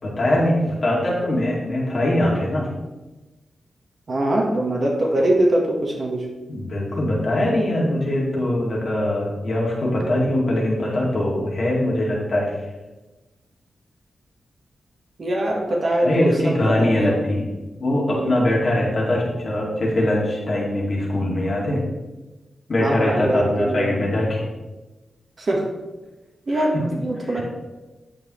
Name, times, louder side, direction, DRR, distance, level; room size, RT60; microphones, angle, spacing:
voice 1, 0.0-2.7 6.5-12.6 16.0-17.5 17.8-21.8 22.7-24.4 26.5-27.4, left 1 dB, 40° left, -4 dB, 2.2 m, -22 dB
voice 2, 4.1-6.2 15.2-17.1 18.1-18.5 22.8-23.9 25.4-25.6 26.5-27.4, right 1 dB, 40° right, 0 dB, 1.3 m, -22 dB
9.1 x 7.4 x 3.1 m, 1.1 s
wide cardioid pair, 145°, 0 cm